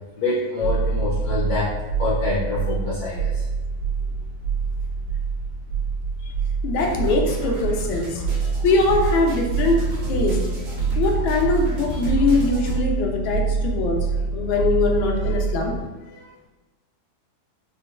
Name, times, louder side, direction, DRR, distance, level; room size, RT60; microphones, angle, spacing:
voice 1, 0.2-1.7 2.0-3.4, left 3 dB, 70° left, -6 dB, 1.0 m, -26 dB
sound 1, 0.6-15.8, right 4 dB, 60° right, 1.2 m, -25 dB
voice 2, 6.6-8.2 8.6-9.8 10.1-10.4 11.0-14.0 14.3-15.7 16.1-16.2, left 3 dB, 85° left, 1 dB, 1.3 m, -22 dB
sound 2, 6.8-12.8, left 1 dB, 85° right, 1.5 m, -36 dB
4.0 x 2.1 x 2.4 m, 1.2 s
omnidirectional pair, 2.1 m